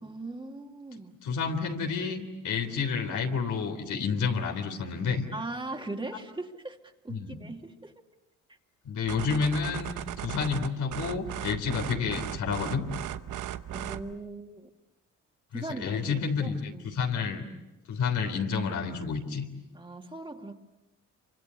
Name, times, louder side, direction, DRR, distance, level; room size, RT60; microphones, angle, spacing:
voice 1, 0.0-1.1 5.3-6.8 7.0-7.9 13.7-14.7 15.5-17.0 19.7-20.5, right 2 dB, 15° right, 4 dB, 2.4 m, -39 dB
voice 2, 1.2-5.2 7.1-7.4 8.9-9.9 10.2-12.9 15.5-17.4 17.9-19.5, left 5 dB, 75° left, 4 dB, 3.5 m, -30 dB
sound 1, 9.1-14.1, right 11 dB, 80° right, 1.0 m, -37 dB
28.0 x 25.5 x 8.2 m, 0.99 s
cardioid pair, 90°, 30 cm